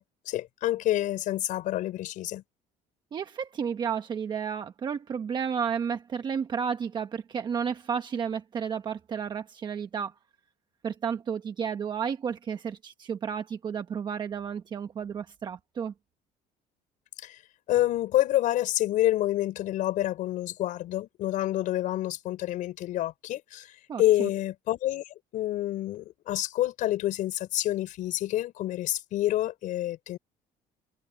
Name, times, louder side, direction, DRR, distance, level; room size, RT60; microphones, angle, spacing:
voice 1, 0.0-2.4 17.2-17.4 17.7-30.2, left 14 dB, 55° left, 5.6 m, -28 dB
voice 2, 3.1-10.1 10.8-15.9 23.9-24.3, right 7 dB, 30° right, 1.1 m, -32 dB
cardioid pair, 170°, 16 cm